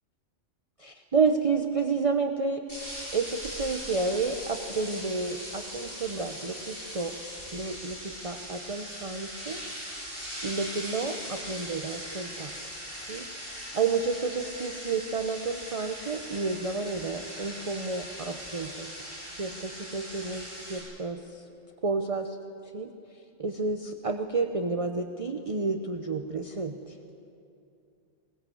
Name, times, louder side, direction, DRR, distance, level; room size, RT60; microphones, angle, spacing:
voice 1, 0.8-2.6 3.1-7.1 7.5-9.6 10.4-12.5 13.1-18.9 19.3-21.4 21.8-22.4 22.7-22.9 23.4-27.0, right 4 dB, 30° right, 6 dB, 0.9 m, -30 dB
sound 1, 2.7-20.8, equal, 50° left, 8.5 m, -40 dB
21.5 x 19.5 x 7.8 m, 2.7 s
omnidirectional pair, 1.3 m